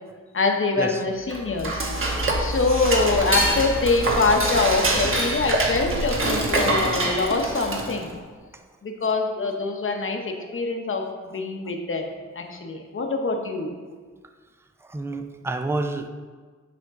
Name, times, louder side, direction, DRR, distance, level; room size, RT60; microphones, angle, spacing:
voice 1, 0.3-1.9 2.4-8.1 8.8-12.1 12.3-13.7, left 3 dB, 45° left, 3 dB, 0.9 m, -24 dB
Dishes pots and pans / Cutlery silverware, 1.2-8.1, right 1 dB, 45° right, 1.2 m, -25 dB
voice 2, 14.8-16.1, right 2 dB, 10° right, 7 dB, 0.4 m, -29 dB
9.3 x 3.6 x 3.7 m, 1.5 s
cardioid pair, 75°, 30 cm